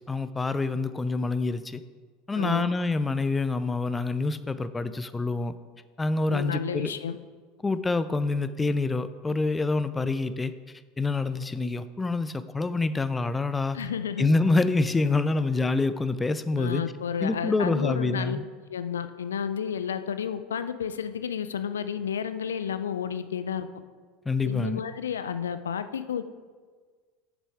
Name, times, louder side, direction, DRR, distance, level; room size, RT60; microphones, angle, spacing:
voice 1, 0.1-1.8 2.3-5.6 6.0-6.9 7.6-10.5 11.0-13.8 14.2-16.8 17.2-18.4 24.3-24.8, left 3 dB, 15° left, 13 dB, 0.4 m, -26 dB
voice 2, 2.3-2.7 6.3-7.2 13.7-14.3 16.6-18.4 18.7-23.7 24.4-26.2, left 7 dB, 85° left, 12 dB, 0.4 m, -31 dB
7.4 x 7.0 x 4.8 m, 1.5 s
hypercardioid pair, 85°, 0 cm